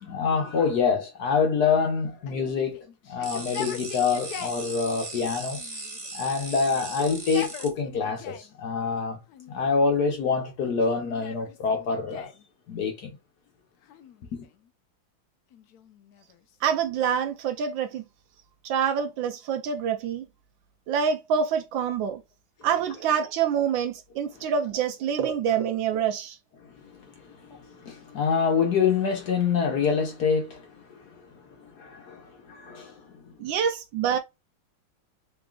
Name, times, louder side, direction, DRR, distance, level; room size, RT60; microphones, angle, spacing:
voice 1, 0.0-5.6 6.1-9.2 9.5-12.3 12.7-13.2 14.4-14.5 26.8-33.2, left 5 dB, 60° left, 1.2 m, -26 dB
Yell, 2.3-4.6 5.5-6.3 6.7-8.5 9.3-9.9 10.6-12.4 13.8-14.7 15.5-17.2, left 8 dB, 80° left, 0.8 m, -43 dB
sound 1, 3.2-7.7, right 2 dB, 20° right, 0.8 m, -38 dB
voice 2, 16.6-18.0 18.6-20.2 20.9-22.2 22.6-26.4 33.4-34.2, right 7 dB, 75° right, 1.2 m, -26 dB
3.8 x 3.6 x 2.3 m
omnidirectional pair, 2.3 m